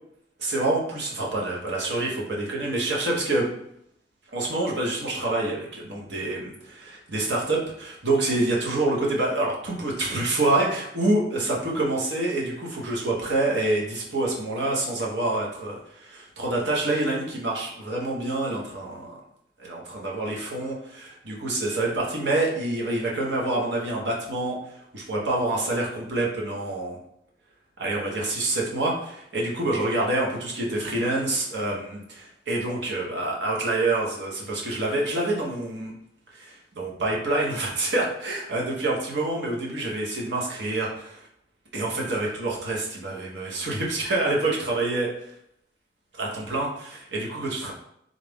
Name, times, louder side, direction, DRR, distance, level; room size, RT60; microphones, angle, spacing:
voice 1, 0.4-3.5 4.3-19.1 19.6-24.6 24.9-27.0 27.8-35.9 36.3-41.2 41.7-45.1 46.2-47.7, right 2 dB, 65° right, -2 dB, 0.9 m, -27 dB
3.8 x 2.4 x 3.4 m, 0.76 s
head